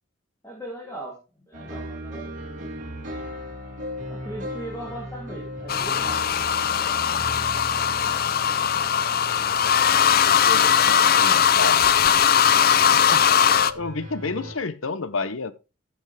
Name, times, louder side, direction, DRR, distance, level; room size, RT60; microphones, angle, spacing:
voice 1, 0.4-2.6 4.0-7.3, right 1 dB, 15° left, 2.6 m, -39 dB
sound 1, 1.5-14.5, equal, 40° right, 2.9 m, -38 dB
sound 2, 5.7-13.7, left 8 dB, 50° left, 0.5 m, -19 dB
voice 2, 10.2-12.2 13.1-13.4 13.7-15.5, left 4 dB, 90° left, 1.0 m, -30 dB
14.5 x 7.1 x 3.4 m
head